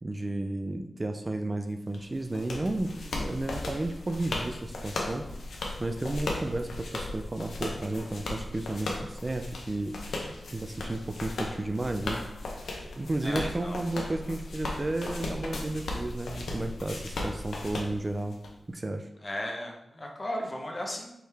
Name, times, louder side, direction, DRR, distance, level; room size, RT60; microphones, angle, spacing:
voice 1, 0.0-5.2 5.8-10.2 10.5-12.2 13.0-18.4 18.7-19.1, right 2 dB, 30° right, 6 dB, 0.3 m, -33 dB
sound 1, 1.9-18.5, left 2 dB, 90° left, 0.7 m, -37 dB
voice 2, 13.2-13.8 19.2-21.1, left 1 dB, 30° left, 0 dB, 0.9 m, -35 dB
4.6 x 3.2 x 3.3 m, 0.82 s
cardioid pair, 70°, 0 cm